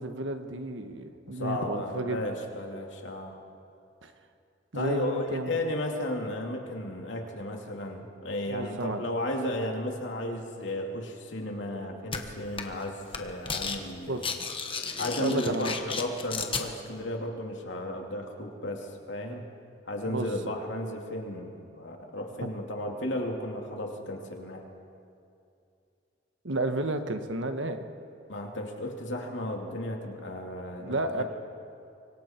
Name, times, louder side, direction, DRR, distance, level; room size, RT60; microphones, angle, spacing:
voice 1, 0.0-2.2 4.0-4.1 4.7-5.6 8.5-9.1 14.1-14.2 15.2-15.7 20.1-20.3 22.4-22.5 26.4-27.8 30.8-31.2, right 2 dB, 85° right, 7 dB, 1.4 m, -31 dB
voice 2, 1.3-3.4 4.7-14.3 15.0-19.5 19.8-24.6 28.3-31.2, left 1 dB, 75° left, 1 dB, 2.6 m, -34 dB
sound 1, 12.1-12.2 12.6-12.8 13.1-13.8 14.1-16.7, left 5 dB, 30° left, 1.3 m, -33 dB
25.0 x 24.0 x 4.5 m, 2.5 s
head